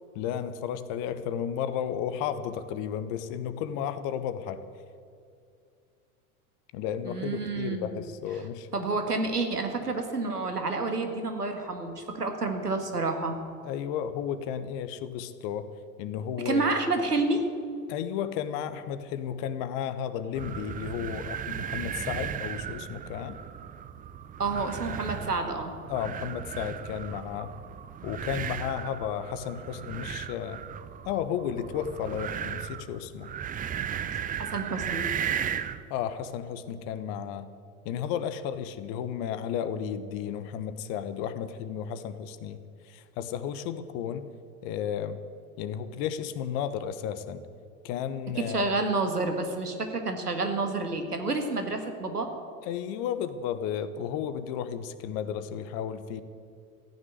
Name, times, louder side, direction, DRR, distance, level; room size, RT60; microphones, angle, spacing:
voice 1, 0.1-4.6 6.7-8.7 13.6-15.7 16.0-16.6 17.9-23.4 25.9-27.5 28.0-30.6 31.0-33.3 35.9-37.5 37.8-44.3 44.6-45.2 45.6-47.5 47.8-48.7 52.7-56.2, left 9 dB, 45° left, 12 dB, 1.2 m, -33 dB
voice 2, 7.0-8.1 8.7-13.4 16.5-17.4 24.4-25.7 34.4-35.1 48.4-52.3, right 3 dB, 85° right, 6 dB, 1.9 m, -29 dB
sound 1, 20.3-35.8, right 9 dB, 20° right, 0.6 m, -36 dB
15.0 x 9.7 x 9.5 m, 2.4 s
figure-of-eight pair, 85°, 45 cm